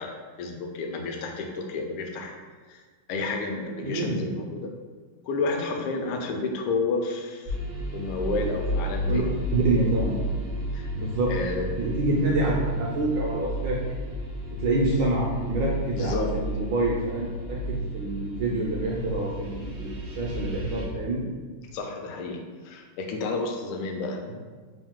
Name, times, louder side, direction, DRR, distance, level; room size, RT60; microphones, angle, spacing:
voice 1, 0.0-2.3 2.7-2.8 3.1-4.7 5.3-7.6 7.9-9.3 10.7-10.9 11.3-11.7 15.9-16.3 21.7-24.2, left 3 dB, 80° left, 2 dB, 1.4 m, -31 dB
voice 2, 3.8-4.2 9.1-9.2 9.5-10.1 10.9-11.4 11.8-13.8 14.6-21.2, right 2 dB, 75° right, -3 dB, 1.0 m, -27 dB
sound 1, 7.4-20.9, right 1 dB, 50° right, 0.5 m, -32 dB
3.6 x 2.6 x 3.6 m, 1.4 s
omnidirectional pair, 2.4 m